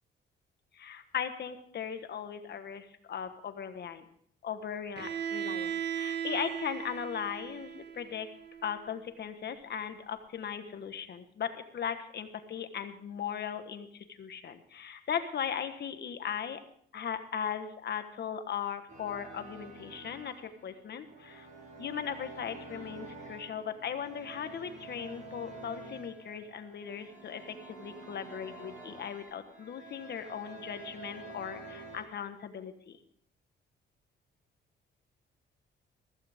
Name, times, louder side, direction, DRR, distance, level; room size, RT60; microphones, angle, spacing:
voice 1, 0.7-4.0 4.4-8.3 8.6-16.6 16.9-21.5 21.8-33.0, left 8 dB, 55° left, 9 dB, 1.4 m, -38 dB
Bowed string instrument, 5.0-8.8, right 9 dB, 60° right, 1.6 m, -37 dB
sound 1, 18.9-32.0, right 3 dB, 45° right, 5.8 m, -48 dB
15.5 x 15.0 x 3.6 m, 0.64 s
cardioid pair, 90°, 20 cm